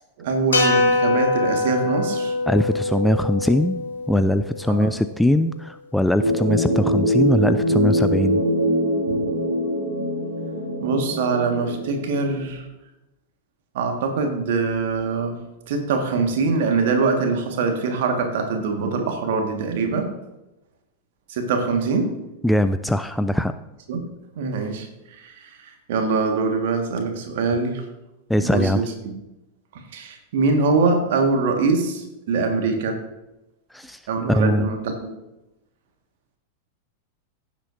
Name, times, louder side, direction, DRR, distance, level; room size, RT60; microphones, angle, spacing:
voice 1, 0.2-2.3 4.7-4.9 9.1-9.2 10.8-12.7 13.7-15.4 15.7-20.1 21.3-22.2 23.9-24.0 24.3-27.8 28.4-29.1 29.7-33.0 34.1-35.1, right 4 dB, 55° right, 4 dB, 1.7 m, -23 dB
sound 1, 0.5-4.9, left 2 dB, 70° left, 2.0 m, -23 dB
voice 2, 2.5-3.8 4.1-8.4 22.4-23.5 28.3-28.8 33.7-34.0 34.3-34.7, left 1 dB, 5° left, 10 dB, 0.3 m, -21 dB
sound 2, 6.2-12.4, equal, 75° right, 2.8 m, -23 dB
15.5 x 7.5 x 2.7 m, 0.94 s
figure-of-eight pair, 90°, 0 cm